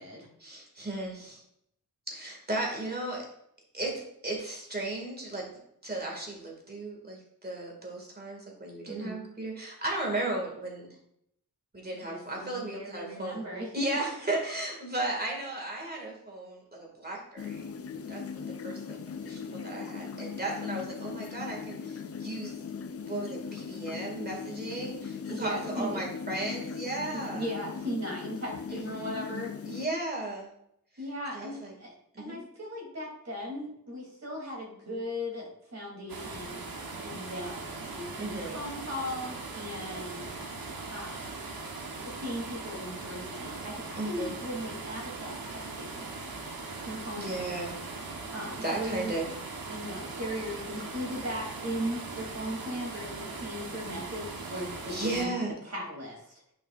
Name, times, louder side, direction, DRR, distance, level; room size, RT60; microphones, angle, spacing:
voice 1, 0.4-1.4 2.1-3.3 3.7-5.6 5.8-11.0 11.7-13.4 13.7-17.7 18.1-19.0 19.3-22.5 23.0-27.5 28.7-29.1 29.7-30.5 31.3-31.7 32.1-32.4 38.2-38.6 44.0-44.3 47.2-47.7 48.6-49.3 54.6-54.7 54.9-55.5, right 2 dB, 25° right, -1 dB, 2.1 m, -35 dB
voice 2, 12.0-13.7 25.3-26.0 27.1-29.5 31.0-36.6 37.0-40.3 40.9-41.5 42.0-46.0 46.8-47.4 48.3-49.1 49.7-55.3 55.6-56.3, equal, 50° right, -2 dB, 2.9 m, -38 dB
sound 1, 17.4-29.9, left 6 dB, 45° left, 0.4 m, -39 dB
sound 2, 36.1-55.3, right 3 dB, 85° right, 1.2 m, -40 dB
10.5 x 5.8 x 2.5 m, 0.74 s
wide cardioid pair, 115°, 35 cm